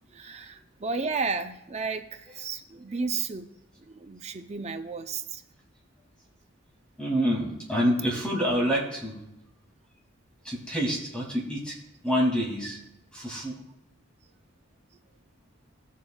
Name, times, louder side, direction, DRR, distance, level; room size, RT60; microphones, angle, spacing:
voice 1, 0.0-3.5 3.8-5.4, right 4 dB, 30° right, 8 dB, 0.5 m, -33 dB
voice 2, 7.0-9.2 10.4-11.8 12.0-12.8 13.1-13.5, equal, 5° left, -3 dB, 2.3 m, -27 dB
16.0 x 7.3 x 2.3 m, 0.89 s
head